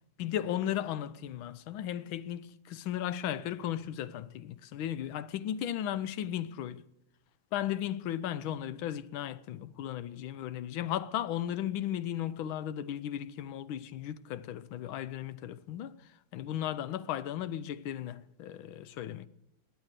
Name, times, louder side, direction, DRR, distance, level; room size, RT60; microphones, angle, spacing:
voice 1, 0.2-6.8 7.5-16.0 16.3-19.3, left 11 dB, 90° left, 1.5 m, -35 dB
21.0 x 8.8 x 6.6 m
omnidirectional pair, 2.1 m